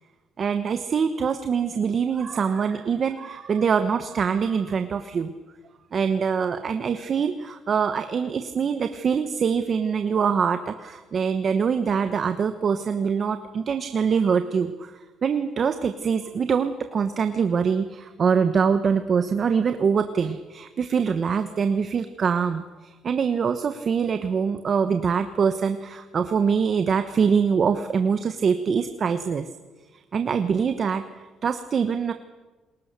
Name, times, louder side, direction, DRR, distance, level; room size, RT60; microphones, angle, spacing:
voice 1, 0.4-5.3 5.9-14.9 15.2-29.5 30.1-32.1, right 6 dB, 40° right, 9 dB, 1.1 m, -24 dB
29.0 x 21.0 x 6.8 m, 1.2 s
cardioid pair, 130°, 0 cm